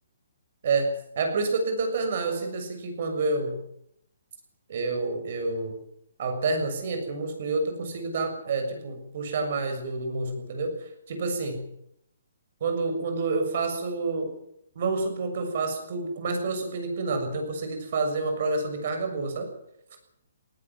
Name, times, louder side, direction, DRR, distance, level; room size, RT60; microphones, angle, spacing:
voice 1, 0.6-3.6 4.7-5.8 6.2-11.7 12.6-14.3 14.7-19.5, right 3 dB, 45° right, 6 dB, 6.8 m, -28 dB
18.5 x 16.5 x 9.5 m, 0.75 s
hypercardioid pair, 165°, 0 cm